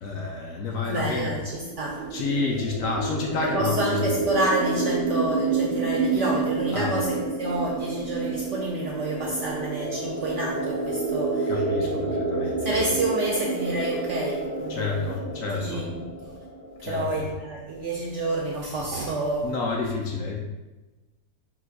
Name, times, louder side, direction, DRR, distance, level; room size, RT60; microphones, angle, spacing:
voice 1, 0.0-1.4 2.1-4.2 6.7-7.0 11.5-12.7 14.7-15.9 16.8-17.2 19.4-20.4, left 4 dB, 65° left, 0 dB, 0.9 m, -29 dB
voice 2, 0.9-2.0 3.4-11.5 11.8-15.2 15.5-16.4 16.8-19.5, right 2 dB, 70° right, -2 dB, 0.7 m, -29 dB
sound 1, 1.6-17.2, right 3 dB, 20° left, 0.6 m, -29 dB
3.9 x 2.5 x 4.6 m, 1.1 s
omnidirectional pair, 1.7 m